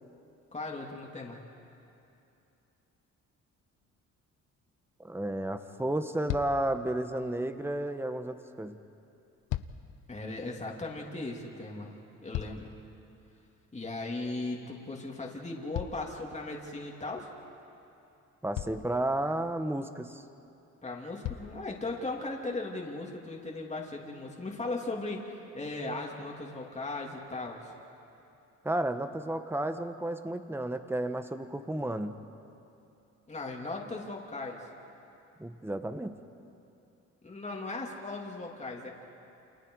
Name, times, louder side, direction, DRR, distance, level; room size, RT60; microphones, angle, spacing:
voice 1, 0.5-1.4 10.1-11.9 12.2-12.7 13.7-17.3 20.8-27.7 33.3-34.7 37.2-38.9, left 2 dB, 25° left, -1 dB, 3.1 m, -37 dB
sound 1, 3.8-4.0 5.4-5.5 5.9-6.0 6.3-6.8 9.1-10.0 11.8-12.9 15.7-16.7 17.9-18.0 18.5-19.0 20.4-20.5 21.2-21.6 22.4-22.5, left 13 dB, 85° left, 0.8 m, -38 dB
voice 2, 5.0-8.8 18.4-20.2 28.6-32.1 35.4-36.2, right 1 dB, 10° right, 8 dB, 1.3 m, -32 dB
29.0 x 28.0 x 4.9 m, 2.8 s
cardioid pair, 90°, 30 cm